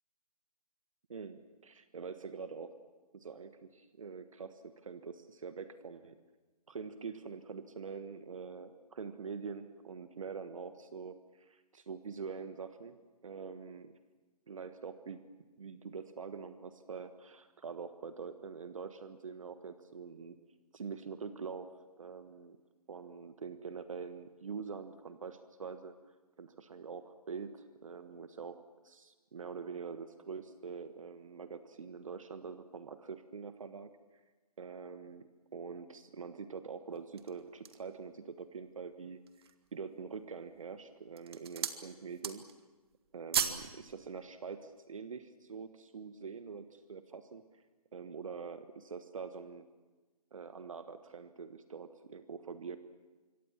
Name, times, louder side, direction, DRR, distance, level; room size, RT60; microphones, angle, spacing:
voice 1, 1.1-2.7 3.1-6.2 6.7-13.0 13.2-13.9 14.5-15.2 15.6-20.4 20.7-21.7 22.0-22.6 22.9-25.9 26.4-33.9 34.6-42.5 43.1-47.6 47.9-49.7 50.3-52.8, right 5 dB, 55° right, 10 dB, 1.4 m, -45 dB
sound 1, 37.0-38.0 38.6-38.7 39.1-39.7 40.4-40.7 41.1-41.8 42.1-42.6 42.9-43.7 44.0-44.2, right 8 dB, 40° right, 1.8 m, -36 dB
26.0 x 24.5 x 7.4 m, 1.3 s
figure-of-eight pair, 140°, 20 cm